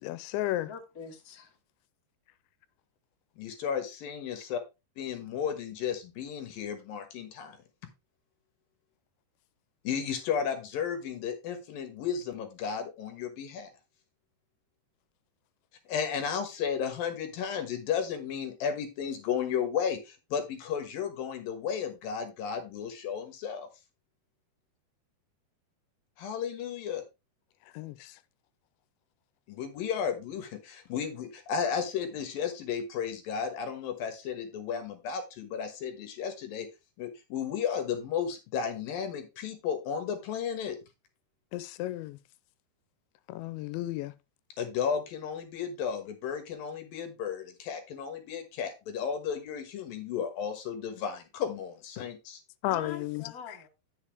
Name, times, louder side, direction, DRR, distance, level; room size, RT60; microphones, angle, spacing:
voice 1, 0.0-0.7 27.7-28.2 41.5-42.2 43.3-44.2 52.6-53.6, left 15 dB, 90° left, 2.9 m, -33 dB
voice 2, 0.6-1.6 52.6-53.7, left 6 dB, 30° left, 1.8 m, -44 dB
voice 3, 3.4-4.6 5.0-7.6 9.8-13.7 15.9-23.7 26.2-27.0 29.5-36.7 37.0-40.8 44.6-52.4, left 7 dB, 65° left, 2.7 m, -33 dB
9.9 x 6.9 x 3.5 m
omnidirectional pair, 5.1 m